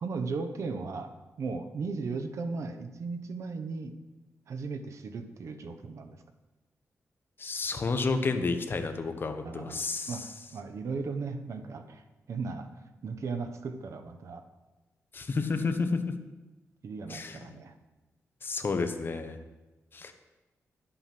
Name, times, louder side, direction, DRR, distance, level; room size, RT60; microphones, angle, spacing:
voice 1, 0.0-1.1 1.4-3.9 4.5-6.2 9.4-12.0 12.3-12.7 13.0-14.4 16.8-17.7, right 4 dB, 70° right, 7 dB, 1.0 m, -36 dB
voice 2, 7.4-10.3 15.1-16.1 17.1-17.6 18.4-19.4 19.9-20.1, left 4 dB, 45° left, 7 dB, 1.1 m, -31 dB
11.0 x 7.9 x 6.0 m, 1.1 s
wide cardioid pair, 105°, 5 cm